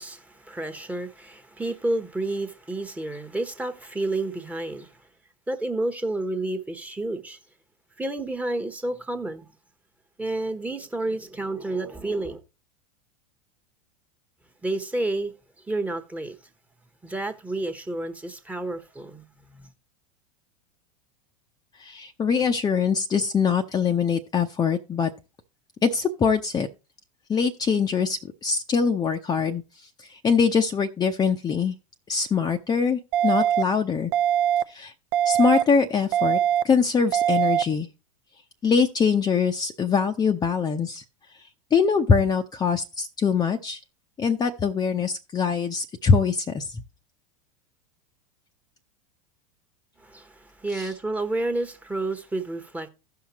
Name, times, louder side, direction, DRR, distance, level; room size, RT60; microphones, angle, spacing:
voice 1, 0.0-5.0 5.5-7.4 8.0-9.5 10.2-12.4 14.6-15.3 15.7-16.4 17.0-19.7 50.0-52.9, right 2 dB, 5° right, 1.1 m, -30 dB
voice 2, 21.8-25.1 25.8-26.7 27.3-29.6 30.0-31.7 32.1-34.1 34.7-34.9 35.2-36.4 36.6-37.9 38.6-41.0 41.7-43.8 44.2-46.8 50.7-50.9, left 6 dB, 20° left, 0.7 m, -23 dB
sound 1, 33.1-33.6 34.1-34.6 35.1-35.6 36.1-36.6 37.1-37.6, right 10 dB, 45° right, 0.6 m, -21 dB
16.0 x 5.8 x 2.9 m
hypercardioid pair, 90°, 19 cm